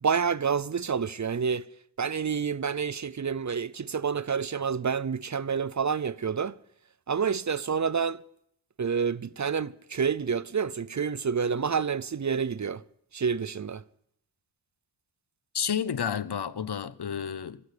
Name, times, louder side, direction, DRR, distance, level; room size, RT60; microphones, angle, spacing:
voice 1, 0.0-1.7 2.0-6.6 7.1-8.2 8.8-12.8 13.1-13.8, right 6 dB, 45° right, 0.5 m, -28 dB
voice 2, 15.5-17.6, left 8 dB, 70° left, 0.8 m, -30 dB
15.0 x 12.5 x 6.6 m
wide cardioid pair, 80°, 42 cm